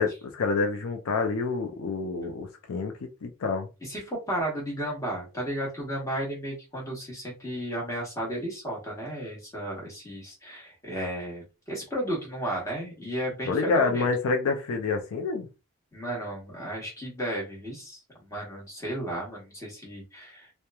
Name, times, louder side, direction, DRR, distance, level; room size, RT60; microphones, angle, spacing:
voice 1, 0.0-3.7 13.4-15.5, left 4 dB, 70° left, 0.4 m, -28 dB
voice 2, 3.8-14.1 15.9-20.5, right 1 dB, 15° left, 1.0 m, -34 dB
2.9 x 2.1 x 2.3 m
head